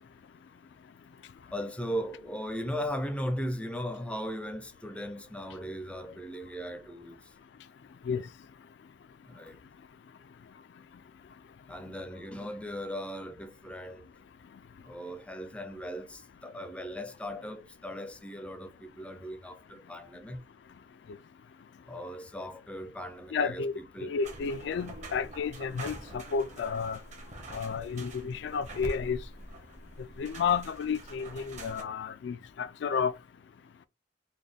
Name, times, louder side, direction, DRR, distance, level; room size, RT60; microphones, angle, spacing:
voice 1, 1.5-7.2 9.3-9.5 11.7-14.1 14.9-20.4 21.9-24.2, equal, 5° left, 0.5 m, -38 dB
voice 2, 23.3-23.7 24.0-27.0 27.5-29.2 30.2-33.1, left 6 dB, 70° left, 0.3 m, -31 dB
sound 1, 24.2-31.8, right 1 dB, 40° right, 1.0 m, -45 dB
4.1 x 2.2 x 3.3 m
head